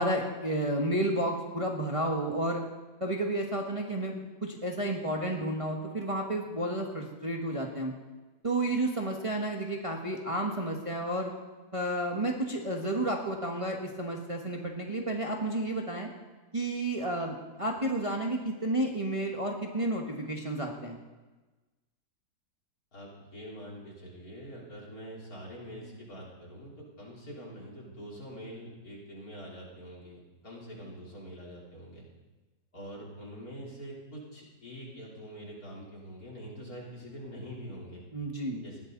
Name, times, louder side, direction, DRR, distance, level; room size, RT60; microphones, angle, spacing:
voice 1, 0.0-2.6 3.0-7.9 8.4-11.3 11.7-16.1 16.5-21.0 38.1-38.6, right 1 dB, 20° right, 0 dB, 1.6 m, -31 dB
voice 2, 22.9-30.2 30.4-32.1 32.7-38.0 38.6-38.8, equal, 60° left, -4 dB, 4.5 m, -44 dB
20.0 x 16.0 x 4.1 m, 1.2 s
omnidirectional pair, 1.8 m